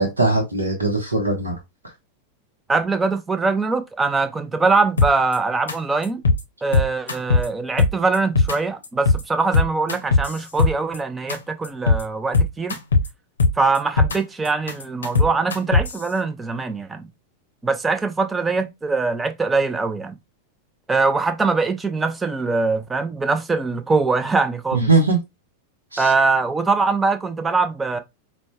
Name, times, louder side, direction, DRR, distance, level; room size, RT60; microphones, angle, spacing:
voice 1, 0.0-1.5 24.7-25.2 25.9-26.1, right 3 dB, 80° right, 0.8 m, -20 dB
voice 2, 2.7-6.2 6.6-12.8 13.6-17.0 17.6-20.2 20.9-24.9 26.0-28.0, right 4 dB, 15° right, 0.5 m, -22 dB
sound 1, 5.0-5.4 5.7-5.8 6.0-6.4 6.7-7.5 7.8-8.6 8.8-9.2 9.5-11.0 11.3-11.4 11.6-12.0 12.3-13.1 13.4-14.2 14.5-16.0, left 3 dB, 70° left, 0.7 m, -18 dB
5.0 x 2.2 x 2.3 m
figure-of-eight pair, 90°, 0 cm